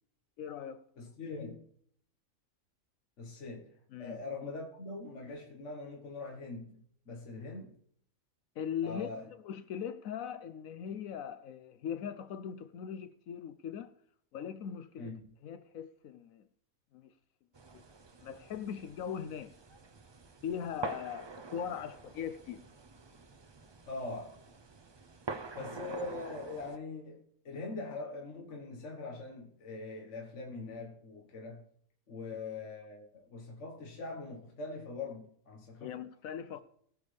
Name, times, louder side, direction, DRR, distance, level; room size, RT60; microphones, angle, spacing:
voice 1, 0.4-0.8 3.9-4.2 8.6-9.1 9.4-13.9 14.3-15.1 15.4-16.4 16.9-17.1 17.7-17.8 18.2-19.5 20.4-22.6 35.8-36.6, left 8 dB, 75° left, 1.0 m, -40 dB
voice 2, 1.0-1.7 3.2-6.8 7.1-7.7 8.8-9.3 15.0-15.3 23.9-24.4 25.5-31.6 32.1-36.0, left 3 dB, 60° left, 1.7 m, -42 dB
sound 1, 17.5-26.8, right 4 dB, 35° right, 0.4 m, -46 dB
19.5 x 7.1 x 3.3 m
omnidirectional pair, 1.5 m